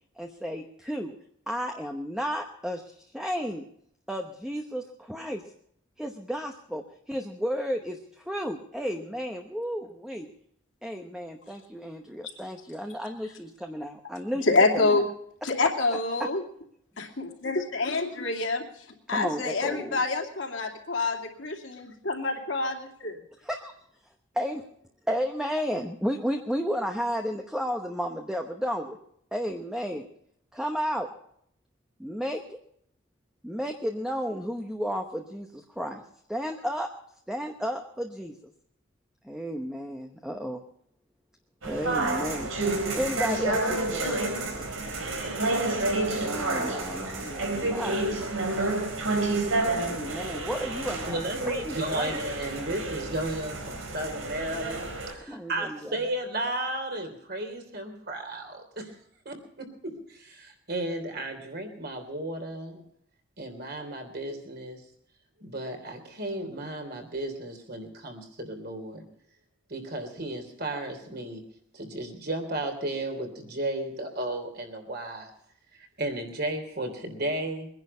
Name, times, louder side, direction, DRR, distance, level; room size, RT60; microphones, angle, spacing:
voice 1, 0.2-1.1 1.5-3.6 4.1-5.4 6.0-10.3 10.8-15.0 16.2-16.3 19.1-20.0 23.4-23.7 24.3-24.6 25.1-29.0 29.3-30.1 30.5-31.1 32.0-32.6 33.4-36.0 36.3-36.9 37.3-38.5 39.2-40.6 41.6-42.5 43.0-44.3 46.2-48.0 49.8-52.2 55.3-56.0, equal, 5° right, 3 dB, 0.9 m, -33 dB
voice 2, 14.5-15.0 15.4-16.4 17.0-23.2, left 3 dB, 65° left, 1 dB, 2.6 m, -27 dB
sound 1, 41.6-55.1, right 2 dB, 85° right, 4.1 m, -29 dB
voice 3, 51.1-59.0 59.3-62.8 63.4-64.8 65.4-69.0 69.7-71.4 71.7-75.3 75.7-77.7, right 1 dB, 50° right, 4 dB, 3.5 m, -34 dB
22.5 x 10.5 x 5.5 m, 0.68 s
head